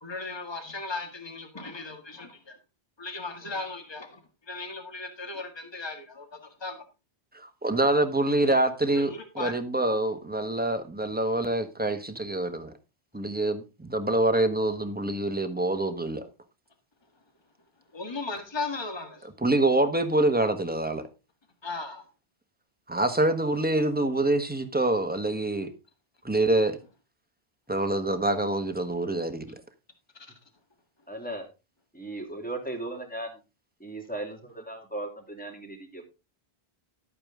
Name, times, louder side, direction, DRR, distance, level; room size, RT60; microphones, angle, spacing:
voice 1, 0.0-2.6 3.0-4.2 4.5-6.8 8.9-9.5 17.9-19.3 21.6-22.1 30.2-30.3, left 3 dB, 25° left, 6 dB, 1.7 m, -36 dB
voice 2, 7.4-12.7 13.1-16.3 19.4-21.0 22.9-25.7 26.2-26.8 27.7-29.5, right 2 dB, 10° right, 7 dB, 1.2 m, -26 dB
voice 3, 31.1-31.4 31.9-33.4 33.8-36.0, right 2 dB, 10° left, 3 dB, 2.7 m, -37 dB
12.0 x 8.8 x 3.7 m, 0.28 s
omnidirectional pair, 1.1 m